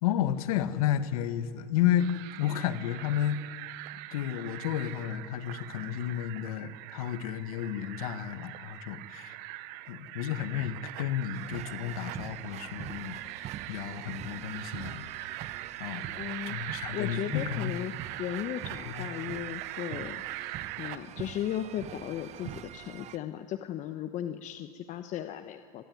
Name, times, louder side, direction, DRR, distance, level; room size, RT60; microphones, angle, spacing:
voice 1, 0.0-2.1 2.4-3.5 4.1-9.4 9.9-15.3 15.8-16.1 16.5-17.7 18.9-19.1, left 10 dB, 70° left, 11 dB, 1.7 m, -32 dB
sound 1, 2.0-21.0, right 17 dB, 55° right, 1.0 m, -42 dB
sound 2, 11.3-23.2, right 12 dB, 35° right, 0.9 m, -44 dB
voice 2, 16.1-16.6 16.9-17.9 18.2-20.2 20.8-25.8, left 11 dB, 40° left, 8 dB, 1.1 m, -36 dB
26.5 x 19.5 x 9.5 m, 2.1 s
hypercardioid pair, 110°, 19 cm